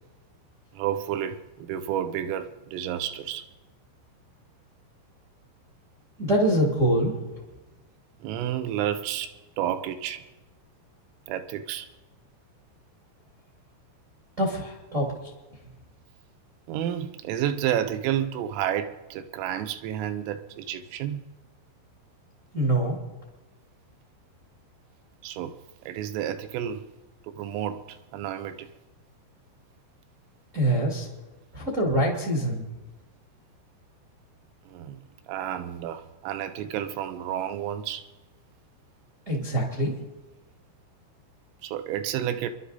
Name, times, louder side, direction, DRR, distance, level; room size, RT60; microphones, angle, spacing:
voice 1, 0.7-3.5 8.2-9.3 9.6-10.2 11.3-11.9 16.7-21.3 25.2-25.5 25.9-26.9 27.2-28.7 34.7-38.0 41.6-42.5, right 10 dB, 80° right, 9 dB, 3.2 m, -31 dB
voice 2, 6.2-7.1 14.4-15.1 22.5-23.0 30.5-31.1 31.5-32.6 39.2-39.9, right 1 dB, 40° right, -3 dB, 1.0 m, -24 dB
29.0 x 11.5 x 4.0 m, 1.1 s
omnidirectional pair, 6.0 m